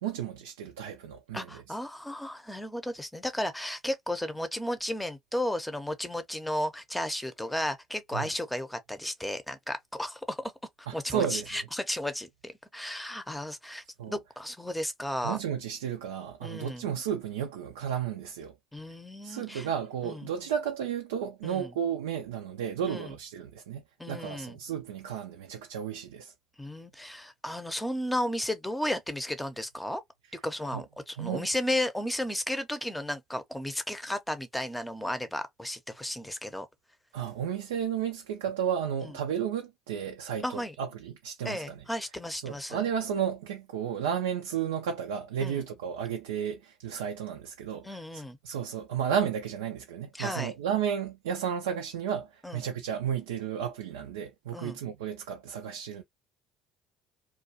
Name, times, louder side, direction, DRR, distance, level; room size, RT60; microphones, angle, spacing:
voice 1, 0.0-1.6 8.1-8.3 10.9-11.5 14.0-14.2 15.2-18.5 19.2-26.3 30.7-30.8 31.2-31.5 37.1-41.8 42.4-56.0, right 8 dB, 85° right, 0.4 m, -33 dB
voice 2, 1.3-10.5 10.8-15.4 16.4-16.9 18.7-19.7 20.0-20.3 21.4-21.7 22.9-23.1 24.0-24.6 26.6-30.0 30.3-36.7 39.0-39.1 40.4-40.7 41.4-42.8 45.4-45.6 47.8-48.4 50.1-50.5 52.4-52.6 54.5-54.8, left 1 dB, 5° left, 0.6 m, -34 dB
2.3 x 2.2 x 2.6 m
hypercardioid pair, 65°, 0 cm